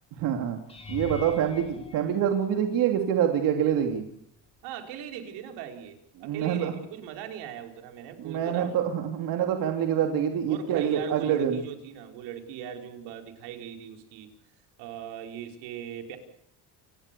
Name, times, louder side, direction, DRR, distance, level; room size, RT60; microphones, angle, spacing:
voice 1, 0.2-0.6 0.9-4.0 6.2-6.7 8.2-11.6, right 9 dB, 55° right, 4 dB, 2.9 m, -26 dB
sound 1, 0.7-3.0 3.7-4.1 4.5-4.6 9.0-9.1, left 7 dB, 15° left, 6.2 m, -42 dB
voice 2, 4.6-8.8 10.5-14.3 14.8-16.2, right 9 dB, 75° right, 5 dB, 4.6 m, -39 dB
28.5 x 18.0 x 6.9 m, 0.72 s
cardioid pair, 170°, 41 cm